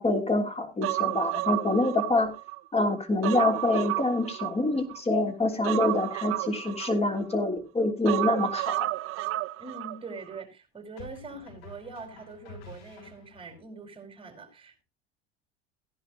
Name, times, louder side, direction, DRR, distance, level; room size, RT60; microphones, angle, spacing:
voice 1, 0.0-2.3 2.7-8.9, left 2 dB, 20° left, 5 dB, 3.3 m, -26 dB
Human voice, 0.8-2.6 3.0-5.0 5.6-7.4 8.1-10.0 10.3-10.4, right 19 dB, 45° right, 0.6 m, -31 dB
sound 1, 8.3-8.5 11.0-13.6, left 4 dB, 70° left, 7.2 m, -49 dB
voice 2, 9.6-14.8, right 3 dB, 15° right, 4 dB, 5.1 m, -43 dB
16.5 x 11.0 x 3.0 m, 0.28 s
hypercardioid pair, 85°, 31 cm